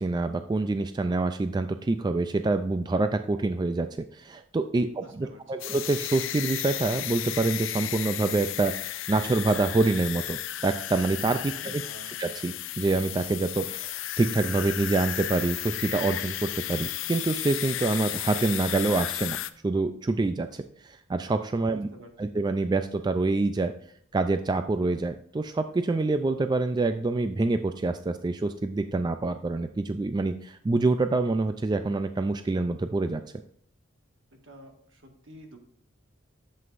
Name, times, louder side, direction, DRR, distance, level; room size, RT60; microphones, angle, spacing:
voice 1, 0.0-11.8 12.2-21.9 22.2-23.7 24.1-33.2, right 3 dB, 20° right, 9 dB, 0.3 m, -26 dB
voice 2, 4.9-5.7 11.5-12.2 21.7-22.3 34.3-35.6, equal, 65° right, 3 dB, 1.7 m, -50 dB
sound 1, 5.6-19.5, left 13 dB, 70° left, 0.5 m, -34 dB
11.0 x 7.7 x 2.5 m, 0.65 s
head